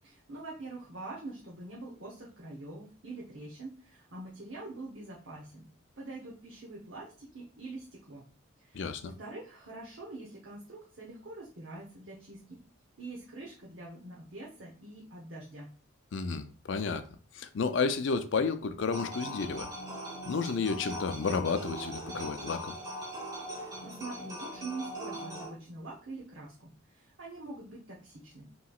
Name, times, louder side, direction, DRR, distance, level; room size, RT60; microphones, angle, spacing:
voice 1, 0.0-5.6 6.0-8.3 8.6-12.6 13.0-15.7 23.5-28.5, right 2 dB, 60° right, 0.9 m, -45 dB
voice 2, 8.7-9.1 16.1-17.1 17.3-19.7 20.3-22.7, left 4 dB, 60° left, 0.4 m, -31 dB
sound 1, 18.9-25.5, equal, 15° right, 1.2 m, -40 dB
5.6 x 3.1 x 2.4 m
head